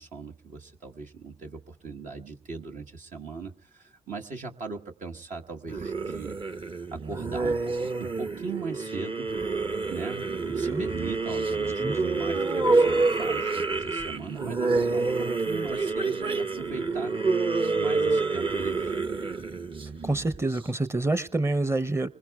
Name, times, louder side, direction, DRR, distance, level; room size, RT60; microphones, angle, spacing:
voice 1, 0.0-6.4 6.9-9.3 9.9-17.2 17.7-18.9, right 4 dB, 60° right, 2 dB, 1.4 m, -39 dB
sound 1, 5.7-20.6, right 3 dB, 35° right, 1.0 m, -27 dB
voice 2, 20.0-22.1, right 2 dB, 20° right, 16 dB, 0.8 m, -27 dB
28.5 x 20.5 x 2.4 m, 0.39 s
hypercardioid pair, 40°, 15 cm